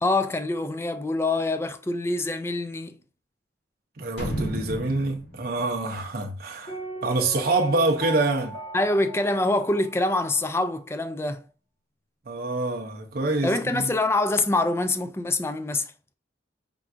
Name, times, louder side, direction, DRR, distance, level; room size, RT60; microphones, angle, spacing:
voice 1, 0.0-3.0 8.7-11.4 13.4-15.9, left 2 dB, 15° left, 0.3 m, -25 dB
voice 2, 4.0-8.6 12.3-14.0, right 2 dB, 55° right, 0.7 m, -26 dB
sound 1, 4.2-7.0 7.3-7.4, right 1 dB, 70° left, 2.1 m, -34 dB
Piano, 6.7-10.4 10.7-10.8, right 3 dB, 45° left, 1.3 m, -37 dB
4.5 x 3.7 x 2.5 m
head